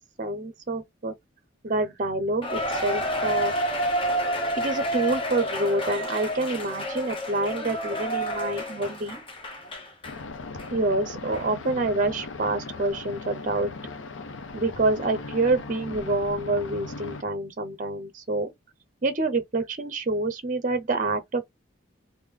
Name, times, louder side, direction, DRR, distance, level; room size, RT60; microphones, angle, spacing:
voice 1, 0.2-1.1 1.6-3.5 4.6-9.2 10.7-13.7 14.5-18.5 19.0-21.4, right 2 dB, 40° right, 0.6 m, -27 dB
Cheering, 2.4-10.2 10.6-10.7 11.3-11.4, equal, 25° left, 0.8 m, -29 dB
sound 1, 10.0-17.2, left 3 dB, 75° left, 0.6 m, -38 dB
3.1 x 2.6 x 3.6 m
head